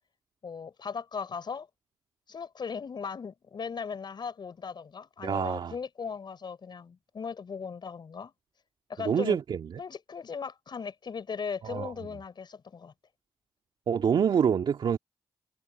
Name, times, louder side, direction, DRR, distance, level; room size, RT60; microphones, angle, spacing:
voice 1, 0.4-1.7 2.3-8.3 8.9-9.4 9.8-12.9, left 6 dB, 55° left, 5.8 m, -38 dB
voice 2, 5.2-5.7 9.0-9.8 11.6-11.9 13.9-15.0, right 7 dB, 65° right, 1.9 m, -26 dB
supercardioid pair, 45°, 9 cm